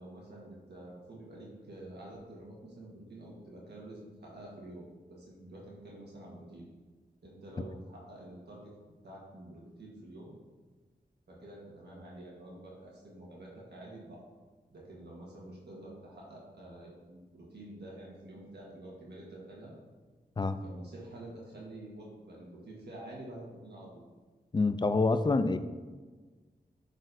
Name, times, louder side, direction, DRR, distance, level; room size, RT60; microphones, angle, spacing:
voice 1, 0.0-6.7 7.2-8.7 9.0-10.3 11.3-14.2 14.7-19.7 20.6-24.0, right 1 dB, 80° right, -4 dB, 1.4 m, -48 dB
voice 2, 24.5-25.6, left 3 dB, 25° left, 11 dB, 0.3 m, -26 dB
8.9 x 4.1 x 2.6 m, 1.4 s
wide cardioid pair, 65°, 17 cm